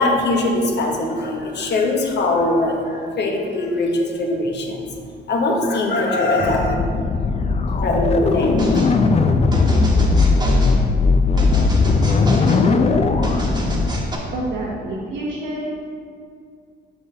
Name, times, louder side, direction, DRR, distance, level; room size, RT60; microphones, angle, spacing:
voice 1, 0.0-4.9 5.3-6.7 7.8-8.6, left 2 dB, 60° left, 2 dB, 1.0 m, -21 dB
sound 1, 6.4-14.0, left 3 dB, 30° left, 0.4 m, -18 dB
sound 2, 8.6-8.9 9.5-10.8 11.4-12.6 13.2-14.2, right 1 dB, 20° right, 1.2 m, -29 dB
voice 2, 14.3-15.9, right 1 dB, 70° right, -4 dB, 0.9 m, -28 dB
7.0 x 5.6 x 3.3 m, 2.2 s
cardioid pair, 90°, 20 cm